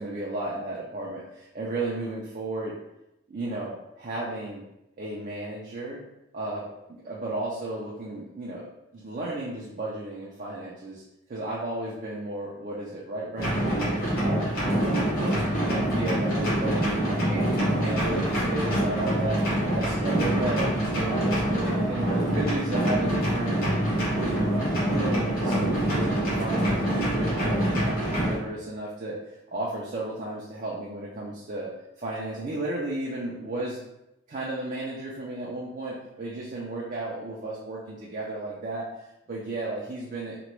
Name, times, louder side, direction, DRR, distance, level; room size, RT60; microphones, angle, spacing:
voice 1, 0.0-2.8 3.3-4.7 5.0-6.0 6.3-8.7 8.9-11.0 11.3-14.4 14.8-19.4 19.7-23.6 24.1-24.5 24.8-29.2 29.5-33.8 34.3-38.9 39.3-40.4, right 2 dB, 40° right, -4 dB, 0.4 m, -34 dB
sound 1, 13.4-28.4, right 1 dB, 50° left, 1.0 m, -25 dB
2.9 x 2.2 x 3.0 m, 0.88 s
head